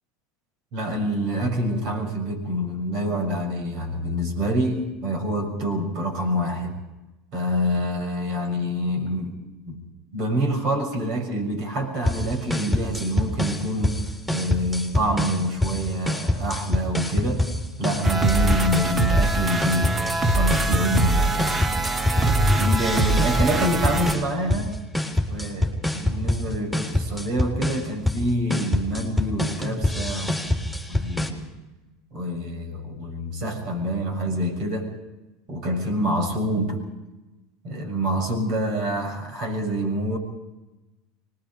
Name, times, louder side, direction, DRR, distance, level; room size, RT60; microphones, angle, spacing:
voice 1, 0.7-6.7 7.3-9.4 9.7-9.8 10.1-14.0 14.3-17.4 17.8-20.0 20.2-21.7 22.5-24.8 25.3-30.6 30.9-31.4 32.1-34.9 35.5-36.9 37.6-40.2, equal, 55° right, 5 dB, 6.7 m, -26 dB
sound 1, 12.1-31.3, left 1 dB, ahead, 4.2 m, -26 dB
sound 2, 18.0-24.1, right 3 dB, 25° right, 1.8 m, -23 dB
25.5 x 21.5 x 5.2 m, 1.0 s
hypercardioid pair, 80°, 0 cm